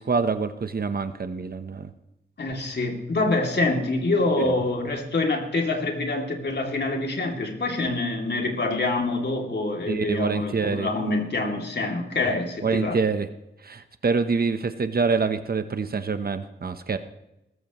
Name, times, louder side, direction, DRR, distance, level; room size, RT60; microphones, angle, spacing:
voice 1, 0.0-1.9 4.4-4.5 9.9-10.9 12.6-13.3 13.6-17.0, right 4 dB, 55° right, 10 dB, 1.0 m, -26 dB
voice 2, 2.4-13.0, left 2 dB, 60° left, 2 dB, 2.7 m, -26 dB
19.5 x 14.5 x 3.1 m, 0.89 s
wide cardioid pair, 135°, 19 cm